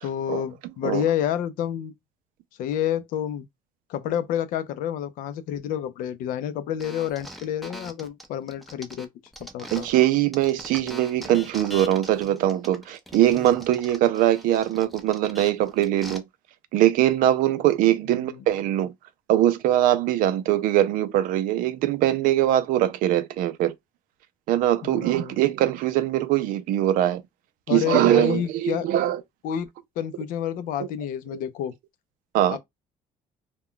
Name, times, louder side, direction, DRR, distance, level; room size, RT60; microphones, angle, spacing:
voice 1, 0.0-1.9 2.6-3.4 3.9-9.1 9.4-9.9 18.1-18.5 24.8-25.4 27.7-28.9 29.4-29.7 30.0-31.7 32.5-32.6, left 10 dB, 80° left, 0.5 m, -29 dB
sound 1, 6.8-10.0 10.3-16.2, equal, ahead, 0.4 m, -41 dB
voice 2, 9.7-16.2 16.7-18.9 19.3-23.7 24.5-27.2 27.7-29.2 30.8-30.9 31.3-31.4 32.3-32.6, right 13 dB, 80° right, 0.4 m, -22 dB
2.2 x 2.1 x 3.6 m
cardioid pair, 135°, 14 cm